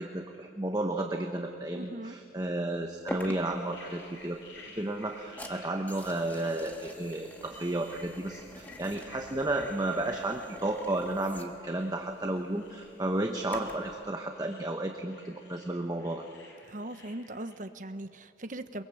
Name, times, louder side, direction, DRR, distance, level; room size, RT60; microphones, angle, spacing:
voice 1, 0.0-16.2, right 1 dB, 20° right, 3 dB, 1.1 m, -33 dB
voice 2, 1.7-2.2 16.7-18.8, right 1 dB, 45° right, 9 dB, 1.0 m, -40 dB
sound 1, 3.1-17.6, left 3 dB, 90° left, 5.4 m, -55 dB
sound 2, 3.1-13.9, left 1 dB, 10° left, 1.5 m, -47 dB
23.0 x 22.5 x 7.7 m, 2.5 s
head